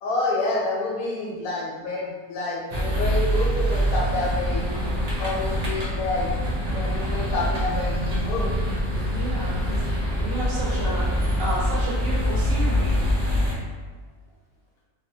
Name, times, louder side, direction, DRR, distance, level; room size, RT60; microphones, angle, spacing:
voice 1, 0.0-4.9 5.2-6.3 6.7-8.5, left 2 dB, 75° left, -3 dB, 1.1 m, -28 dB
sound 1, 2.7-13.5, equal, 90° right, 0.3 m, -24 dB
voice 2, 9.1-9.8 10.2-11.1 11.4-13.0, right 1 dB, 65° right, -6 dB, 1.2 m, -31 dB
2.7 x 2.5 x 2.7 m, 1.4 s
omnidirectional pair, 1.5 m